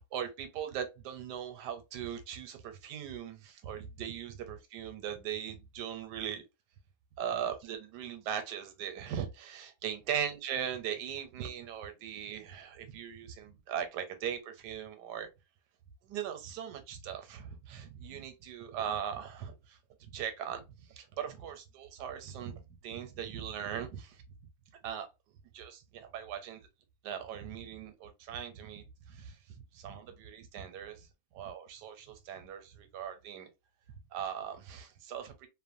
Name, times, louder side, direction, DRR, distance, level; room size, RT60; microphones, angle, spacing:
voice 1, 0.1-6.4 7.2-15.3 16.0-20.6 20.9-24.2 24.8-25.1 25.5-26.6 27.0-29.4 29.7-31.1 31.3-33.5 34.1-35.5, right 9 dB, 85° right, 1.2 m, -39 dB
2.9 x 2.1 x 2.5 m
omnidirectional pair, 1.8 m